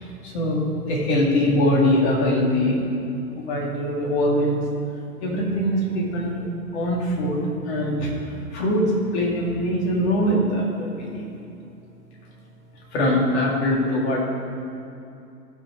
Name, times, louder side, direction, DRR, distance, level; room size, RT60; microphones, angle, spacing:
voice 1, 0.0-2.8 3.3-4.6 5.2-6.4 6.7-11.3 12.9-14.2, left 1 dB, 40° left, -3 dB, 2.5 m, -22 dB
15.5 x 6.4 x 4.7 m, 2.7 s
figure-of-eight pair, 120°, 50 cm